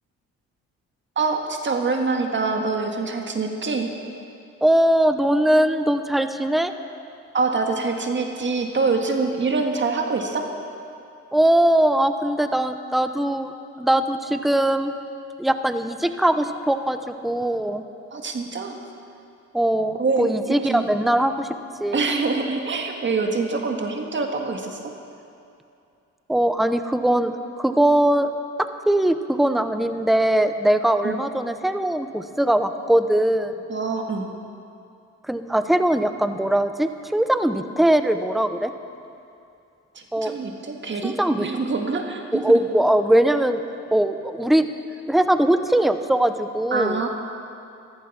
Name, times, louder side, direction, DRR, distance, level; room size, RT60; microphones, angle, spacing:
voice 1, 1.1-3.9 7.3-10.5 18.1-18.8 20.0-20.8 21.9-24.9 31.0-31.2 33.7-34.3 39.9-42.4 46.7-47.1, right 4 dB, 40° right, 3 dB, 1.7 m, -25 dB
voice 2, 4.6-6.7 11.3-13.5 13.8-14.9 15.4-17.0 17.2-17.8 19.5-21.5 21.8-22.0 26.3-27.3 27.6-28.3 28.9-33.5 35.3-38.7 40.1-40.3 41.0-41.5 42.3-43.6 43.9-44.7 45.1-47.0, right 1 dB, ahead, 9 dB, 0.7 m, -20 dB
14.5 x 14.0 x 5.9 m, 2.6 s
cardioid pair, 90°, 30 cm